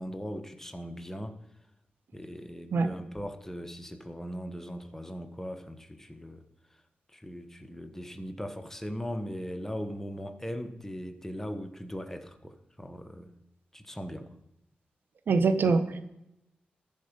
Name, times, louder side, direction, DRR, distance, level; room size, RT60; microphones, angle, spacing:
voice 1, 0.0-1.4 2.1-6.4 7.1-13.3 13.7-14.3, equal, 10° left, 7 dB, 1.3 m, -39 dB
voice 2, 15.3-16.0, right 4 dB, 75° right, 10 dB, 1.0 m, -24 dB
14.0 x 5.1 x 5.2 m, 0.84 s
cardioid pair, 55°, 4 cm